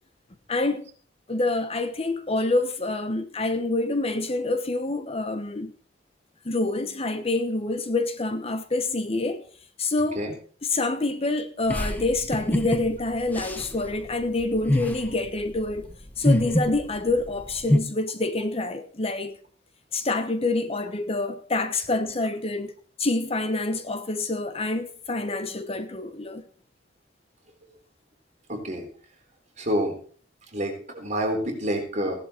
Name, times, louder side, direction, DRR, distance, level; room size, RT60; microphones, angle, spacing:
voice 1, 0.5-0.8 1.3-5.7 6.4-9.4 9.8-10.2 10.7-15.9 16.2-19.4 19.9-26.4, left 2 dB, 35° left, 1.0 m, -27 dB
sound 1, 11.7-17.8, left 1 dB, 10° left, 1.2 m, -26 dB
voice 2, 28.5-28.9 29.6-29.9 30.5-32.1, equal, 40° right, 3.8 m, -27 dB
16.0 x 11.0 x 4.4 m
head